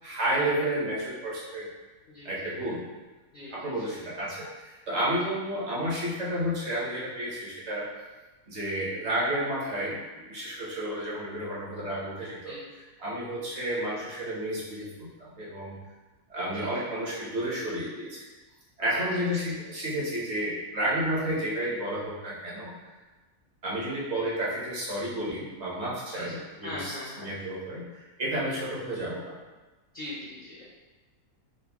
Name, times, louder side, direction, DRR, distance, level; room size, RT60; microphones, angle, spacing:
voice 1, 0.0-1.7 2.2-2.8 3.5-7.9 8.5-14.9 15.2-15.8 16.3-18.2 18.8-22.8 23.6-29.4, right 1 dB, 55° right, -7 dB, 1.2 m, -31 dB
voice 2, 2.1-2.5 3.3-3.9 5.2-5.3 12.4-12.7 16.6-16.9 18.8-19.1 26.1-27.3 29.9-30.6, left 1 dB, 60° left, -6 dB, 0.5 m, -41 dB
3.9 x 2.1 x 3.4 m, 1.2 s
omnidirectional pair, 1.5 m